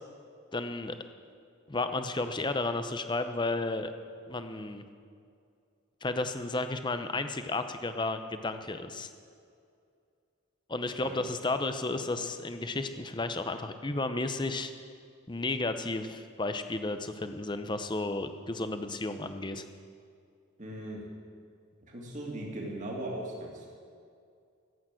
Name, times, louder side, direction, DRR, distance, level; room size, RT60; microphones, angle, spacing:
voice 1, 0.5-0.9 1.7-3.9 4.3-4.8 6.0-9.1 10.7-14.7 15.3-19.7, left 2 dB, 20° left, 9 dB, 0.7 m, -33 dB
voice 2, 20.6-21.0 21.9-23.7, right 1 dB, 35° right, -2 dB, 2.5 m, -38 dB
14.0 x 8.7 x 7.6 m, 2.3 s
head